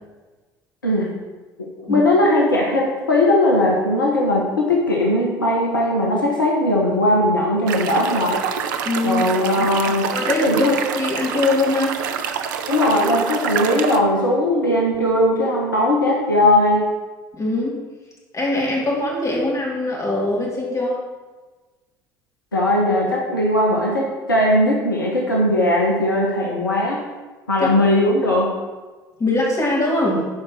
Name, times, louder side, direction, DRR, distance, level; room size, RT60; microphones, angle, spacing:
voice 1, 0.8-1.1 1.6-8.4 9.0-10.7 12.7-16.9 22.5-27.0 27.5-28.5, left 1 dB, 85° left, -2 dB, 1.3 m, -19 dB
sound 1, 7.7-14.0, right 8 dB, 70° right, 0.7 m, -26 dB
voice 2, 8.8-9.2 9.5-12.0 17.3-17.8 18.3-21.0 27.6-27.7 29.2-30.2, left 2 dB, 30° left, -2 dB, 3.6 m, -22 dB
11.5 x 5.2 x 6.1 m, 1.3 s
figure-of-eight pair, 60°, 11 cm